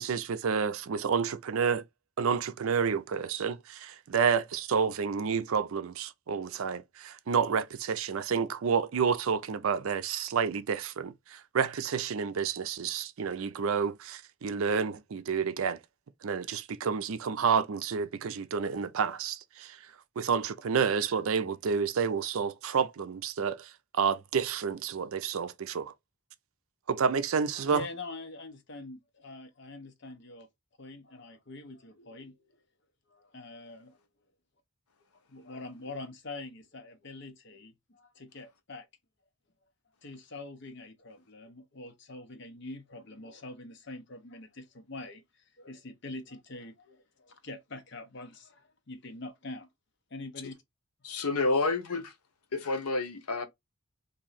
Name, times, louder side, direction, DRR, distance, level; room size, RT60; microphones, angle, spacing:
voice 1, 0.0-1.8 2.2-15.8 16.2-19.8 20.2-23.7 23.9-25.9 26.9-27.8, right 6 dB, 70° right, 0.4 m, -29 dB
voice 2, 27.5-30.5 30.8-32.6 33.1-34.0 35.3-38.9 40.0-49.7 50.1-50.6 51.1-51.2, left 2 dB, 50° left, 0.8 m, -44 dB
voice 3, 51.0-52.1 52.5-53.5, left 3 dB, 85° left, 0.8 m, -29 dB
3.0 x 2.7 x 4.0 m
head